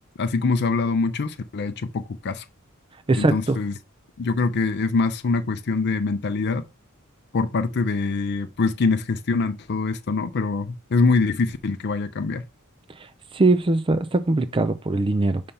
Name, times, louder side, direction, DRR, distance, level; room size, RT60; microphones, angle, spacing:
voice 1, 0.2-2.4 3.1-3.7 4.2-6.6 7.3-12.4, left 4 dB, 50° left, 0.5 m, -24 dB
voice 2, 3.1-3.6 13.3-15.4, right 2 dB, 25° right, 0.4 m, -21 dB
5.5 x 3.3 x 5.4 m
head